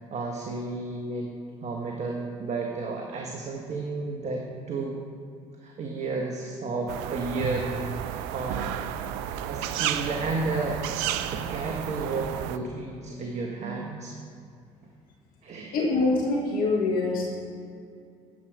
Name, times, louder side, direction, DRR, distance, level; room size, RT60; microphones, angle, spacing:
voice 1, 0.0-4.9 5.6-8.7 9.3-10.8 11.3-14.1 15.4-15.7, right 3 dB, 45° right, 0 dB, 1.3 m, -32 dB
sound 1, 6.9-12.6, right 11 dB, 75° right, 0.5 m, -32 dB
voice 2, 15.7-17.4, left 3 dB, 60° left, -2 dB, 1.6 m, -24 dB
10.0 x 7.7 x 4.8 m, 2.4 s
hypercardioid pair, 60°, 16 cm